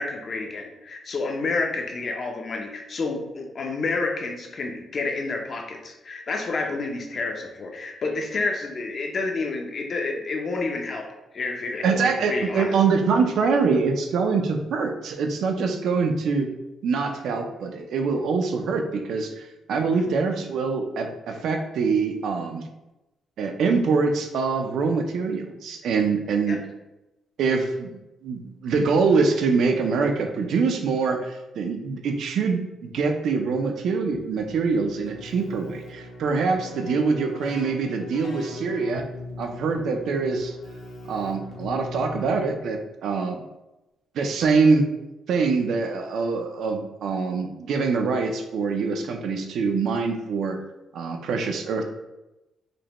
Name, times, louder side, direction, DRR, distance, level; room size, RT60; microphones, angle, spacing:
voice 1, 0.0-11.1 11.3-12.7 20.0-20.1 26.5-26.6 36.8-37.0, left 3 dB, 35° left, 2 dB, 0.5 m, -29 dB
voice 2, 11.8-16.5 16.8-22.6 23.4-26.6 27.4-39.0 39.4-40.6 41.1-43.4 44.1-44.9 45.3-50.6 50.9-51.8, right 4 dB, 65° right, 5 dB, 0.4 m, -24 dB
Keyboard (musical), 34.1-42.8, left 2 dB, 70° left, 0.9 m, -40 dB
5.1 x 2.1 x 2.9 m, 0.98 s
cardioid pair, 165°, 0 cm